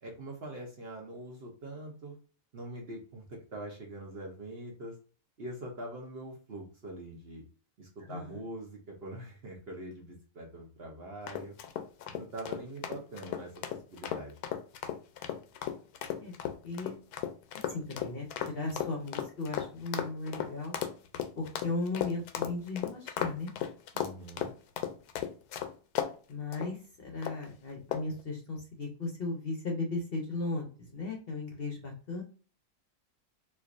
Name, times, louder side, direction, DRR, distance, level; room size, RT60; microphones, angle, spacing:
voice 1, 0.0-2.2 2.5-5.0 5.4-7.4 7.8-11.6 12.1-14.4 23.9-24.5, right 1 dB, 50° right, 0 dB, 0.8 m, -43 dB
voice 2, 8.1-8.4 16.2-16.9 17.5-20.8 21.4-23.5 26.3-32.2, left 3 dB, 50° left, 0 dB, 0.7 m, -36 dB
sound 1, 11.3-26.1 26.5-26.7 27.2-27.5 27.9-28.2, left 10 dB, 85° left, 1.1 m, -36 dB
4.4 x 2.4 x 2.5 m, 0.38 s
omnidirectional pair, 1.6 m